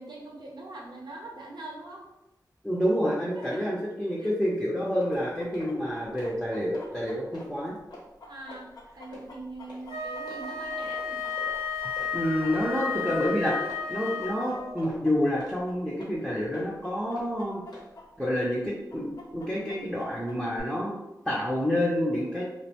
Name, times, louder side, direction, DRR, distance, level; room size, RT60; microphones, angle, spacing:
voice 1, 0.0-2.1 3.3-3.8 4.2-4.3 8.3-8.7 9.0-11.2, right 2 dB, 85° right, -1 dB, 0.6 m, -42 dB
voice 2, 2.6-7.8 12.1-13.6 13.9-17.6 18.2-21.0 21.2-22.5, equal, ahead, -6 dB, 0.5 m, -28 dB
sound 1, 4.4-4.5 4.9-5.1 5.5-5.7 6.0-6.4 6.7-6.9 7.3-7.5 7.9-8.0 8.5-8.6 9.1-9.3 9.7-9.8 10.3-10.4 10.8-11.0 11.4-11.5 12.0-12.1 12.5-12.6 13.1-13.2 13.6-13.8 14.2-14.4 14.8-15.0 15.4-15.6 16.0-16.1 16.5-16.7 17.1-17.3 17.7-17.9, left 2 dB, 85° left, 0.9 m, -45 dB
Chicken rooster, 5.1-13.4 13.7-18.0 18.3-18.4 18.9-20.6, left 2 dB, 60° left, 0.4 m, -48 dB
Wind instrument woodwind instrument, 9.9-14.8, left 5 dB, 40° right, 0.7 m, -33 dB
2.5 x 2.0 x 2.8 m, 0.93 s
wide cardioid pair, 100°, 7 cm